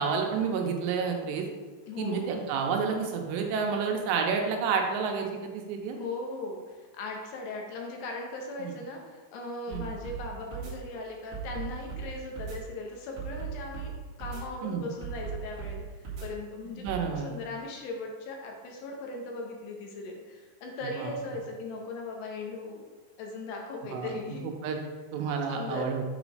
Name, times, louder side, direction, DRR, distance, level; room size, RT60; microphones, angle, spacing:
voice 1, 0.0-1.5 2.0-6.0 8.6-8.7 9.7-9.8 14.6-14.8 16.7-17.3 21.0-21.1 23.9-24.1 24.6-24.8 25.1-26.0, right 5 dB, 90° right, 2 dB, 3.0 m, -30 dB
voice 2, 1.9-2.3 5.9-13.9 14.2-15.8 16.2-22.8 23.2-24.4 25.5-25.9, left 2 dB, 75° left, 1 dB, 3.0 m, -38 dB
sound 1, 9.7-10.2 10.5-10.7 11.3-12.1 12.4-12.6 13.2-13.9 14.2-14.4 15.0-15.7 16.0-16.3 16.9-17.0, right 7 dB, 40° right, 2.2 m, -37 dB
8.1 x 4.0 x 4.9 m, 1.4 s
omnidirectional pair, 5.0 m